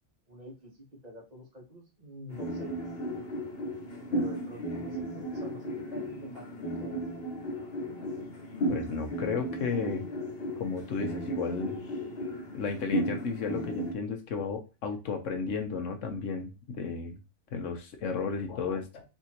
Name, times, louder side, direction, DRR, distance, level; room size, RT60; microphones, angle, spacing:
voice 1, 0.3-2.7 4.1-7.2, equal, 35° right, -1 dB, 1.4 m, -47 dB
sound 1, 2.3-13.9, equal, 55° left, 1.3 m, -35 dB
voice 2, 8.7-10.0 10.6-11.8 12.5-17.2 17.5-19.0, left 5 dB, 85° left, 5 dB, 1.2 m, -33 dB
4.1 x 3.6 x 2.9 m, 0.28 s
omnidirectional pair, 1.3 m